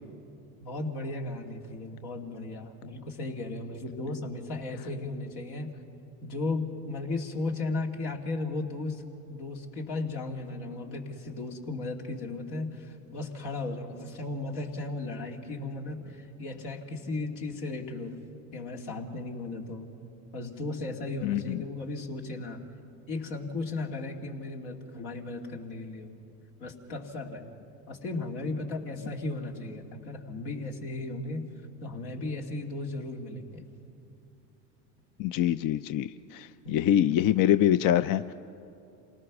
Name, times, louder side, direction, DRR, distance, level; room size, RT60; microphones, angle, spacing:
voice 1, 0.6-5.7 6.2-9.0 9.3-18.2 18.5-19.9 20.3-22.6 23.1-26.2 26.6-27.5 27.9-31.5 31.8-33.6 36.6-36.9, left 2 dB, 75° left, 1 dB, 2.7 m, -35 dB
voice 2, 21.2-21.6 35.2-38.3, left 11 dB, 50° left, 13 dB, 0.5 m, -25 dB
27.5 x 18.5 x 6.1 m, 2.7 s
hypercardioid pair, 75°, 45 cm